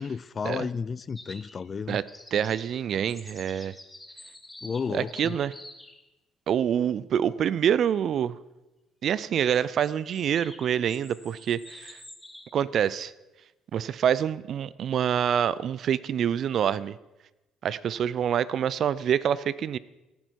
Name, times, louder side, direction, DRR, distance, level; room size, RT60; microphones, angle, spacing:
voice 1, 0.0-2.0 4.6-5.4, left 5 dB, 40° left, 0.4 m, -32 dB
sound 1, 1.2-1.7 2.1-6.0 9.5-12.6, left 1 dB, 10° left, 1.7 m, -48 dB
voice 2, 2.3-3.8 4.9-5.5 6.5-8.4 9.0-12.0 12.5-13.1 13.7-17.0 17.6-19.8, right 9 dB, 55° right, 0.5 m, -26 dB
17.5 x 9.2 x 4.6 m
hypercardioid pair, 60°, 0 cm